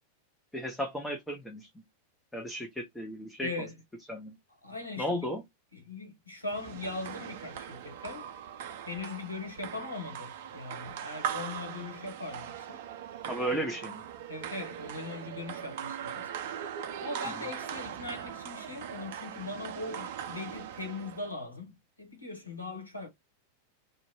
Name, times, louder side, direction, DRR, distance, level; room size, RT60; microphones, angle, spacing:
voice 1, 0.5-1.8 2.3-3.5 4.1-4.4 5.0-5.4 13.3-14.1, equal, 5° left, 0.5 m, -34 dB
voice 2, 3.4-3.7 4.6-5.3 5.7-8.3 8.8-12.8 13.5-13.6 14.3-16.3 17.0-23.1, left 3 dB, 85° left, 0.9 m, -40 dB
sound 1, 6.5-21.3, right 9 dB, 55° right, 0.4 m, -40 dB
2.5 x 2.1 x 2.9 m
figure-of-eight pair, 90°, 0 cm